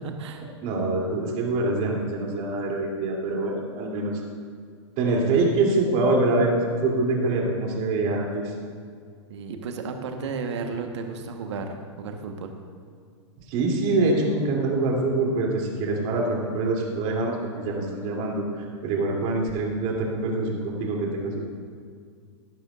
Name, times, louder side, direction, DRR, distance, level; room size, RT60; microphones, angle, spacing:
voice 1, 0.0-0.4 9.3-12.5, right 4 dB, 70° right, 4 dB, 1.3 m, -33 dB
voice 2, 0.6-4.2 5.0-6.5 6.8-8.5 13.5-21.4, right 2 dB, 45° right, -1 dB, 3.0 m, -25 dB
16.5 x 12.0 x 2.5 m, 2.1 s
hypercardioid pair, 110°, 15 cm